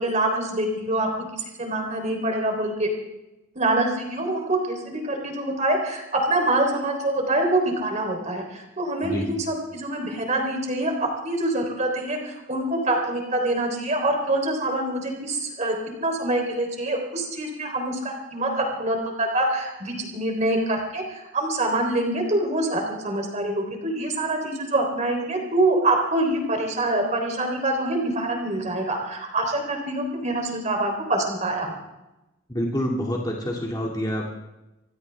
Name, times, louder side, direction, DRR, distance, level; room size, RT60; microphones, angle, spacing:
voice 1, 0.0-2.9 3.6-31.7, right 1 dB, 35° right, 3 dB, 3.4 m, -25 dB
voice 2, 32.5-34.3, equal, 20° left, -2 dB, 2.2 m, -27 dB
25.0 x 16.0 x 3.4 m, 0.98 s
head